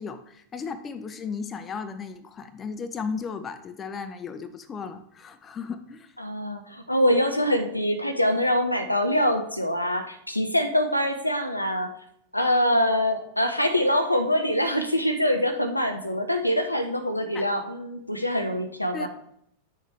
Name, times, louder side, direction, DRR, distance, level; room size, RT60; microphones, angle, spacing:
voice 1, 0.0-6.1 17.3-17.5 18.9-19.1, left 5 dB, 20° left, 10 dB, 0.7 m, -35 dB
voice 2, 6.2-11.9 12.3-19.1, equal, 85° left, 6 dB, 0.8 m, -24 dB
9.5 x 6.5 x 3.3 m, 0.71 s
figure-of-eight pair, 90°, 0 cm